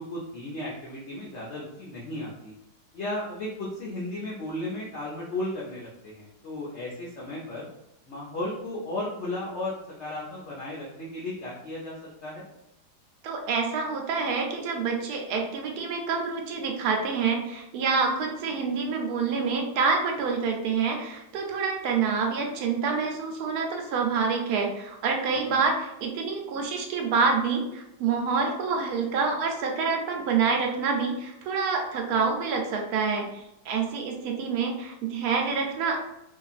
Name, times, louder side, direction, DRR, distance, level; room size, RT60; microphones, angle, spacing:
voice 1, 0.0-2.5 2.9-7.7 8.1-12.4 25.5-25.6, left 1 dB, 75° left, -5 dB, 0.6 m, -35 dB
voice 2, 13.2-36.0, right 5 dB, 70° right, 2 dB, 1.0 m, -27 dB
2.7 x 2.5 x 2.4 m, 0.87 s
omnidirectional pair, 1.8 m